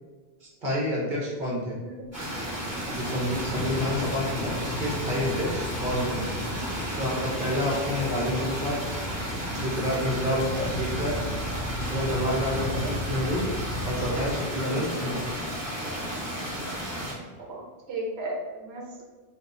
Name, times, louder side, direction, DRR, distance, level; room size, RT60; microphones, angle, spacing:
voice 1, 0.6-1.8 2.9-6.3 7.0-8.8 9.5-11.2 11.7-13.4 13.8-15.2, left 1 dB, 50° right, -4 dB, 1.0 m, -29 dB
Car / Idling, 2.0-15.0, left 1 dB, 20° left, 0.5 m, -37 dB
sound 1, 2.1-17.1, equal, 15° right, 1.2 m, -33 dB
voice 2, 10.3-10.6 12.8-12.9 14.6-14.9 17.4-17.6 17.9-19.0, right 1 dB, 80° right, -1 dB, 1.0 m, -35 dB
3.8 x 2.4 x 2.5 m, 1.3 s
omnidirectional pair, 1.1 m